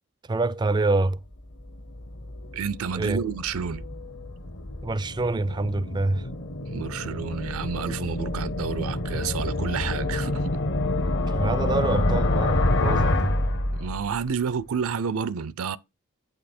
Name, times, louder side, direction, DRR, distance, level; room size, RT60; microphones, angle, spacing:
voice 1, 0.3-1.2 2.9-3.3 4.8-6.3 11.3-13.4, right 2 dB, 20° right, 0.3 m, -26 dB
sound 1, 1.3-14.3, left 2 dB, 55° left, 1.0 m, -28 dB
voice 2, 2.5-3.9 6.7-10.4 13.7-15.8, right 6 dB, 70° right, 0.5 m, -30 dB
8.6 x 5.4 x 4.3 m
head